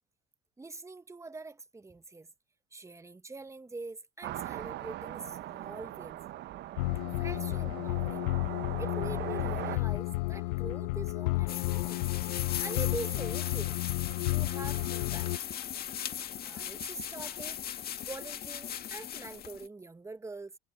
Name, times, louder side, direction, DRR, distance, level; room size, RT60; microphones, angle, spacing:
voice 1, 0.6-2.3 2.7-6.2 7.2-8.3 8.8-12.1 12.6-13.8 14.3-15.4 16.4-17.6 18.0-20.6, right 3 dB, 15° right, 1.1 m, -44 dB
sound 1, 4.2-9.8, right 14 dB, 60° right, 1.1 m, -40 dB
sound 2, 6.8-15.4, left 22 dB, 85° left, 0.5 m, -32 dB
sound 3, 11.5-19.7, left 10 dB, 50° left, 2.0 m, -38 dB
supercardioid pair, 75°, 20 cm